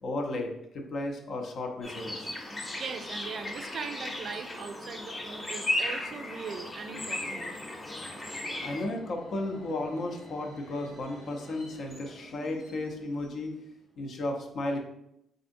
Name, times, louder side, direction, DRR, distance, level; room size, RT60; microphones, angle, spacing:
voice 1, 0.0-2.3 8.6-13.6 14.0-14.8, left 2 dB, 60° left, 2 dB, 0.6 m, -34 dB
sound 1, 1.8-8.8, left 1 dB, 25° left, 0.7 m, -36 dB
voice 2, 2.7-7.5, right 5 dB, 55° right, 7 dB, 0.3 m, -40 dB
Subway metro underground, 6.2-13.9, equal, 80° left, 1.2 m, -49 dB
3.6 x 2.6 x 2.5 m, 0.79 s
cardioid pair, 90°, 0 cm